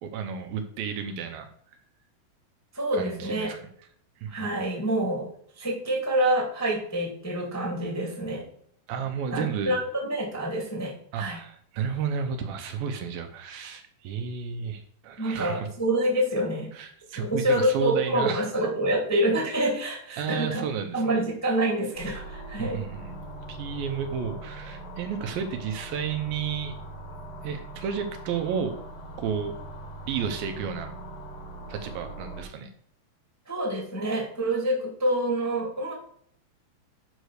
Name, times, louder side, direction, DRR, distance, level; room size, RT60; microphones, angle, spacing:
voice 1, 0.0-1.5 2.9-3.7 4.2-4.5 8.9-9.8 11.1-15.7 16.7-18.5 20.2-21.0 22.6-23.2 23.5-26.8 27.4-28.8 29.2-29.5 30.1-31.0 31.7-32.7, right 7 dB, 75° right, 6 dB, 2.5 m, -32 dB
voice 2, 2.7-3.5 4.3-5.3 5.5-8.4 9.3-11.4 15.2-16.7 17.1-20.6 20.9-22.8 33.5-35.9, right 1 dB, 5° left, -3 dB, 1.3 m, -27 dB
sound 1, 22.0-32.4, right 1 dB, 55° left, 2.1 m, -41 dB
8.2 x 4.9 x 6.4 m, 0.64 s
omnidirectional pair, 4.5 m